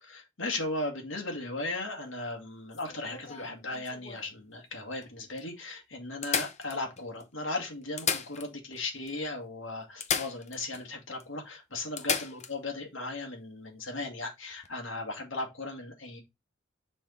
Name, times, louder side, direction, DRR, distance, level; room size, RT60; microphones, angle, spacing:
voice 1, 0.0-16.2, left 2 dB, 85° left, 2.0 m, -37 dB
sound 1, 2.7-4.3 5.0-5.1 5.4-5.5 6.2-7.2 7.8-8.8 9.1-9.2 10.0-10.9 11.2-11.3 12.0-12.5 14.5-14.7, left 7 dB, 35° left, 0.7 m, -34 dB
6.2 x 3.6 x 4.5 m
head